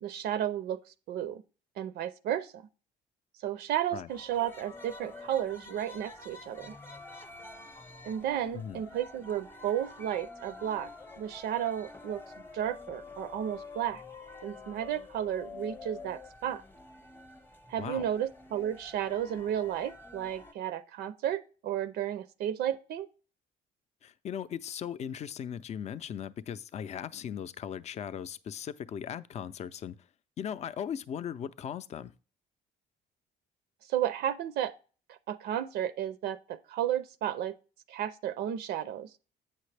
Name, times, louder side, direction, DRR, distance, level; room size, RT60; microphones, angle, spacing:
voice 1, 0.0-0.8 1.1-1.4 1.8-2.7 3.4-6.7 8.0-10.9 11.2-12.2 12.5-14.0 14.4-16.6 17.7-23.1 33.9-34.7 35.1-37.5 37.9-39.1, right 10 dB, 75° right, 0.5 m, -33 dB
sound 1, 4.1-20.5, left 3 dB, 15° left, 0.8 m, -48 dB
voice 2, 24.0-30.0 30.4-32.1, left 8 dB, 40° left, 0.4 m, -38 dB
8.3 x 5.8 x 3.3 m
cardioid pair, 110°, 17 cm